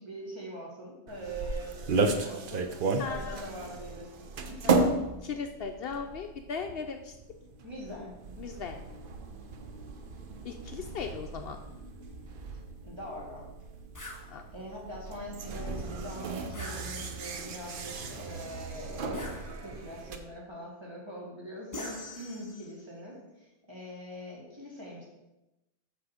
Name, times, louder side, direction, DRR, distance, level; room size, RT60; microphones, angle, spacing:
voice 1, 0.0-2.7 3.0-5.0 7.6-8.1 12.8-13.4 14.5-19.3 19.6-25.0, equal, 25° right, -4 dB, 2.1 m, -43 dB
sound 1, 1.1-20.2, right 3 dB, 55° right, 0.8 m, -35 dB
voice 2, 3.0-3.4 4.6-4.9 5.2-7.1 8.4-8.8 10.4-11.6 14.3-14.4, left 5 dB, 65° left, 5 dB, 0.7 m, -37 dB
sound 2, 13.9-14.3 16.5-17.3 19.1-19.9 21.7-22.8, left 1 dB, 20° left, 1.0 m, -43 dB
6.3 x 6.1 x 4.9 m, 0.97 s
omnidirectional pair, 1.1 m